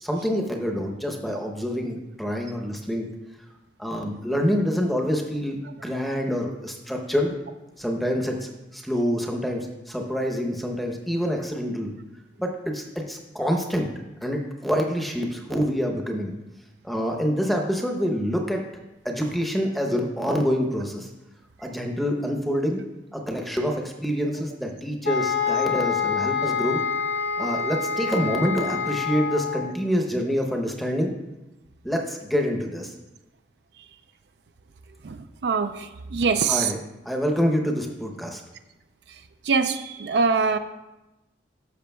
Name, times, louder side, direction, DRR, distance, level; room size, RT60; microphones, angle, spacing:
voice 1, 0.0-3.1 3.8-7.3 7.8-11.9 12.4-13.9 14.2-16.3 16.8-18.6 19.0-21.1 21.6-22.8 23.1-26.8 27.4-31.1 31.8-32.9 36.5-36.8 37.0-38.4, equal, ahead, 2 dB, 0.8 m, -26 dB
sound 1, 25.0-29.7, left 6 dB, 65° left, 0.8 m, -26 dB
voice 2, 35.0-36.7 39.5-40.6, right 5 dB, 70° right, 9 dB, 0.4 m, -23 dB
12.5 x 6.3 x 2.3 m, 0.99 s
head